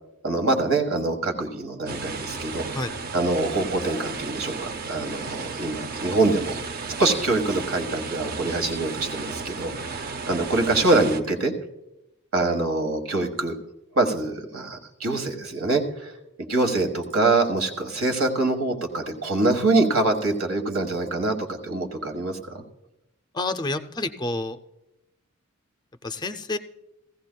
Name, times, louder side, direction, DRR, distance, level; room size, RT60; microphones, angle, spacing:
voice 1, 0.2-4.6 4.9-6.6 7.0-11.5 12.3-13.5 13.9-16.1 16.5-22.4, right 2 dB, 80° right, 5 dB, 1.4 m, -24 dB
sound 1, 1.9-11.2, right 4 dB, 45° right, 0.6 m, -34 dB
voice 2, 23.3-24.6 26.0-26.6, left 2 dB, 20° left, 9 dB, 0.4 m, -29 dB
16.5 x 15.5 x 2.2 m, 0.90 s
head